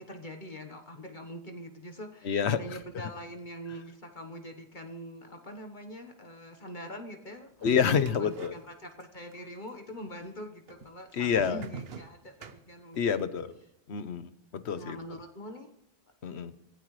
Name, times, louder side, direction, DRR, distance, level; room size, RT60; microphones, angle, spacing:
voice 1, 0.0-7.8 8.0-13.3 14.7-15.7, equal, 45° left, 4 dB, 1.4 m, -44 dB
voice 2, 2.2-2.6 7.6-8.5 11.1-11.7 13.0-13.5 13.9-15.0 16.2-16.5, left 7 dB, 75° left, 12 dB, 1.2 m, -28 dB
sound 1, 7.6-9.1 9.3-10.1 10.7-13.2, right 5 dB, 65° right, 1.1 m, -46 dB
24.5 x 16.5 x 3.2 m, 0.76 s
omnidirectional pair, 1.1 m